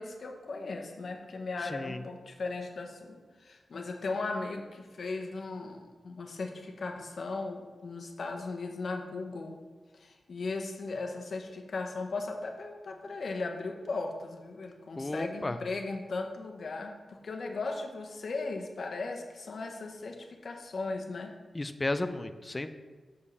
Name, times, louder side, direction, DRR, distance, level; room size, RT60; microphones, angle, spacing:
voice 1, 0.0-9.6 9.9-21.3, left 3 dB, 65° left, 3 dB, 1.0 m, -37 dB
voice 2, 15.0-15.6 21.5-22.7, left 2 dB, 25° left, 10 dB, 0.4 m, -33 dB
6.5 x 5.3 x 5.4 m, 1.4 s
wide cardioid pair, 95°, 0 cm